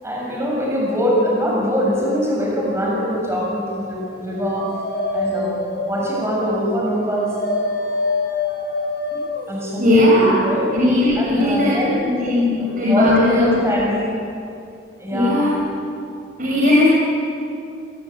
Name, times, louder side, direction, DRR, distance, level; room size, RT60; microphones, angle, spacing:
voice 1, 0.0-4.7 5.1-7.4 9.5-10.7 11.1-12.0 12.6-14.2 15.0-15.6, equal, 15° right, -3 dB, 7.2 m, -23 dB
Dog, 3.9-9.5, left 3 dB, 65° left, 5.1 m, -26 dB
voice 2, 9.8-10.4 10.7-13.6 15.1-15.6 16.4-16.8, left 2 dB, 45° right, -6 dB, 6.4 m, -17 dB
27.5 x 23.0 x 9.4 m, 2.6 s
head